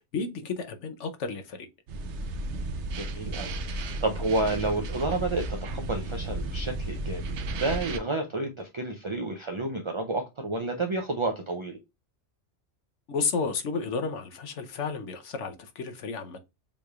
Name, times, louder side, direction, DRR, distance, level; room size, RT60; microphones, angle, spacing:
voice 1, 0.0-1.7 13.1-16.4, left 4 dB, 75° left, 1.1 m, -32 dB
sound 1, 1.9-8.0, right 2 dB, 75° right, 0.9 m, -33 dB
voice 2, 3.0-7.2 7.6-11.8, right 2 dB, 45° right, 0.4 m, -30 dB
7.0 x 3.3 x 2.3 m
omnidirectional pair, 1.2 m